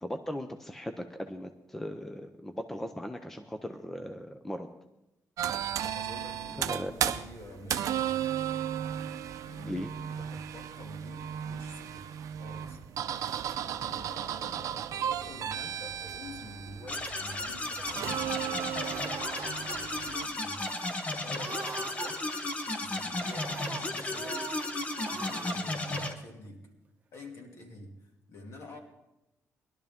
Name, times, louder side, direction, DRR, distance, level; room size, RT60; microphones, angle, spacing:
voice 1, 0.0-4.7 6.7-7.1 9.6-9.9, left 1 dB, 5° left, 6 dB, 0.5 m, -38 dB
sound 1, 5.4-20.3, right 10 dB, 65° right, 0.6 m, -35 dB
voice 2, 5.9-8.1 9.4-9.8 10.1-12.8 13.6-19.0 19.6-20.6 21.1-22.2 22.8-24.5 25.0-26.7 27.1-28.8, left 2 dB, 50° left, 1 dB, 2.4 m, -48 dB
sound 2, 16.9-26.1, left 2 dB, 25° left, 0.9 m, -34 dB
Laughter, 17.1-18.5 18.8-19.8 20.2-20.3 20.6-20.9 21.3-22.7 23.1-24.7 25.0-25.6 25.8-26.1, right 4 dB, 25° right, 1.0 m, -43 dB
20.5 x 12.0 x 3.6 m, 0.93 s
cardioid pair, 175°, 6 cm